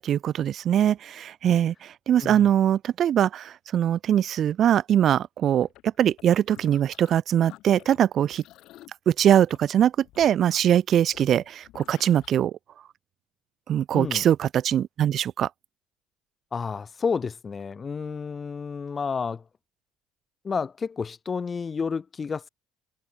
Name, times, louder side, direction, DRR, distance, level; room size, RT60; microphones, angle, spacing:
voice 1, 0.0-8.4 9.1-12.6 13.7-15.5, right 10 dB, 55° right, 1.2 m, -22 dB
Dubstep Growls, 5.6-7.2 7.5-12.3, left 15 dB, 70° left, 4.2 m, -51 dB
voice 2, 13.9-14.2 16.5-19.4 20.4-22.5, left 5 dB, 35° left, 2.0 m, -30 dB
supercardioid pair, 75°, 0 cm